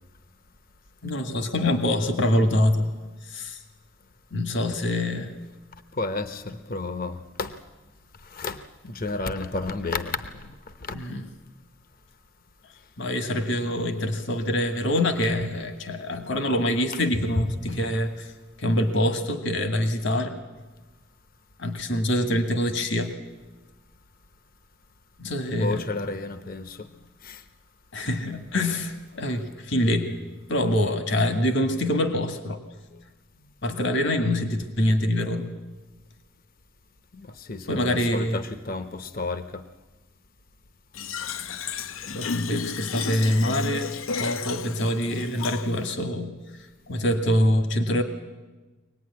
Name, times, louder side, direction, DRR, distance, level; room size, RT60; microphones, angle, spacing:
voice 1, 1.0-2.9 3.2-3.6 4.3-5.3 10.9-11.2 13.0-18.3 18.6-20.4 21.6-23.1 25.2-25.8 27.9-30.1 30.5-32.6 33.6-35.5 37.7-38.4 42.1-43.9 44.2-46.3 46.9-48.0, left 1 dB, 65° left, 1.8 m, -25 dB
voice 2, 5.9-7.6 8.2-11.0 25.5-26.9 27.2-27.4 37.1-39.6, left 3 dB, 45° left, 0.9 m, -32 dB
Fill (with liquid), 40.9-45.9, left 5 dB, 85° left, 0.7 m, -33 dB
24.0 x 19.0 x 9.6 m
head